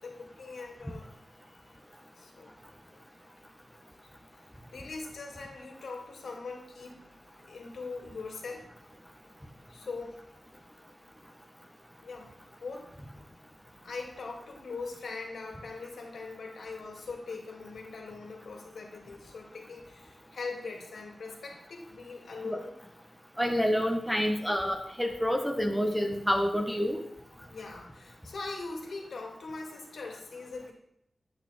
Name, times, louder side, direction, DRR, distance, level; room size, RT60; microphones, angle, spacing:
voice 1, 0.0-1.1 1.5-1.6 2.2-2.5 2.9-3.0 4.7-7.1 7.5-8.7 9.7-10.2 12.0-12.4 12.6-12.9 13.8-22.7 27.5-30.7, left 3 dB, 80° left, 1 dB, 2.4 m, -41 dB
voice 2, 23.4-27.0, equal, ahead, 3 dB, 1.1 m, -28 dB
11.0 x 8.7 x 4.4 m, 0.76 s
wide cardioid pair, 150°, 0 cm